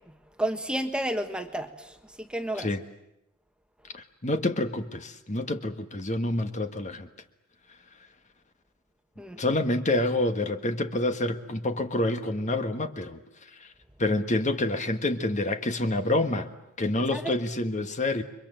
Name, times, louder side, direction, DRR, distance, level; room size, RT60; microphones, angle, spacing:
voice 1, 0.4-2.7 9.2-9.4 17.1-17.4, right 1 dB, 5° right, 6 dB, 1.4 m, -31 dB
voice 2, 3.9-7.1 9.4-13.2 13.6-13.7 14.0-16.5 16.8-18.2, left 2 dB, 35° left, 8 dB, 1.5 m, -27 dB
29.5 x 24.0 x 7.8 m, 0.85 s
head